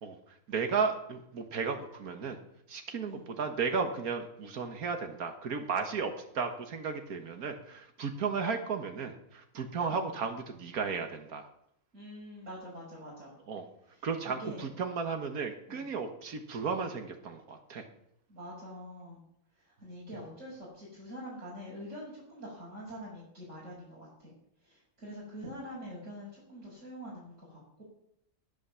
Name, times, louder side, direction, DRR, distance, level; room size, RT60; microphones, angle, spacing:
voice 1, 0.0-2.4 2.7-11.5 13.5-13.7 14.0-17.9, right 5 dB, 85° right, 5 dB, 1.9 m, -34 dB
voice 2, 11.9-13.3 13.9-14.6 15.7-16.0 18.3-19.2 19.6-24.3 24.6-27.8, equal, 55° right, -7 dB, 5.9 m, -45 dB
19.0 x 9.6 x 7.0 m, 0.76 s
omnidirectional pair, 1.5 m